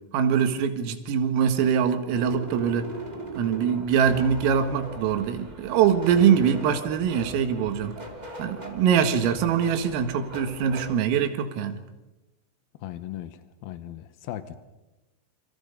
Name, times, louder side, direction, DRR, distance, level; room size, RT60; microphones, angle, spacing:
voice 1, 0.1-2.9 3.4-7.9 8.4-11.8, right 8 dB, 80° right, 4.4 m, -23 dB
sound 1, 2.1-11.0, right 2 dB, 25° right, 0.9 m, -40 dB
voice 2, 12.8-14.6, left 12 dB, 90° left, 2.1 m, -37 dB
29.0 x 26.0 x 5.4 m
omnidirectional pair, 5.9 m